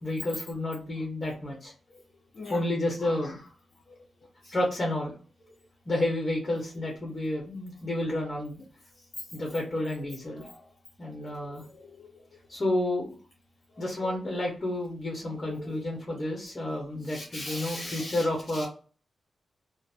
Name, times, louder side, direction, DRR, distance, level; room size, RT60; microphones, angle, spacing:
voice 1, 0.0-1.7 2.5-3.4 4.5-5.1 5.9-8.6 9.3-10.4 11.0-11.6 12.5-13.1 13.8-18.7, left 1 dB, 35° left, 0.9 m, -30 dB
voice 2, 3.0-3.3 4.4-4.5 10.3-10.6 11.3-12.4 13.7-14.1 15.4-15.8 17.1-18.3 18.5-18.7, left 2 dB, 60° left, 0.6 m, -41 dB
2.5 x 2.0 x 3.4 m
cardioid pair, 85°, 0 cm